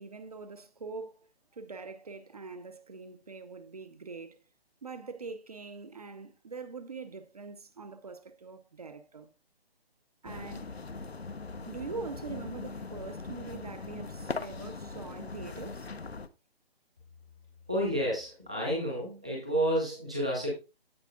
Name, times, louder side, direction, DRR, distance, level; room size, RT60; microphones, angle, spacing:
voice 1, 0.0-4.4 4.8-9.3 10.2-10.7 11.7-15.9, right 4 dB, 40° right, 0.8 m, -43 dB
sound 1, 10.2-16.3, left 4 dB, 85° left, 0.8 m, -40 dB
voice 2, 17.7-20.5, equal, 5° right, 0.5 m, -30 dB
14.5 x 5.0 x 2.3 m
figure-of-eight pair, 145°, 31 cm